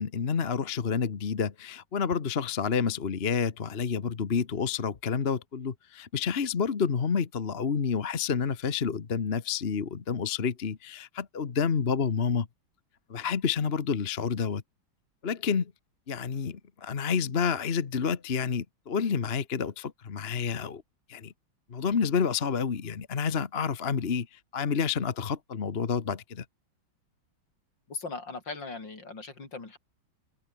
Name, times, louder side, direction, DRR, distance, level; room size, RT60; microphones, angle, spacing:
voice 1, 0.0-12.5 13.1-14.6 15.2-15.7 16.1-20.8 21.1-21.3 21.7-26.4, left 6 dB, 35° left, 1.2 m, -29 dB
voice 2, 27.9-29.8, left 3 dB, 60° left, 5.0 m, -39 dB
open air
omnidirectional pair, 2.2 m